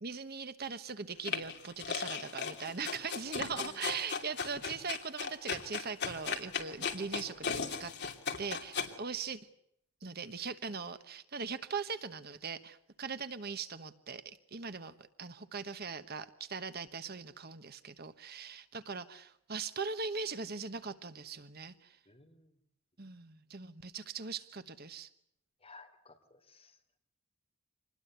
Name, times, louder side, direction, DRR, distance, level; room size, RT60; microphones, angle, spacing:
voice 1, 0.0-7.9 8.4-9.4 10.0-22.0 23.0-25.1, right 5 dB, 45° right, 11 dB, 1.2 m, -40 dB
sound 1, 1.2-8.9, left 6 dB, 50° left, 2.9 m, -37 dB
voice 2, 22.1-22.5 25.6-26.7, left 3 dB, 25° left, 4 dB, 3.7 m, -55 dB
26.5 x 20.5 x 8.1 m, 0.75 s
head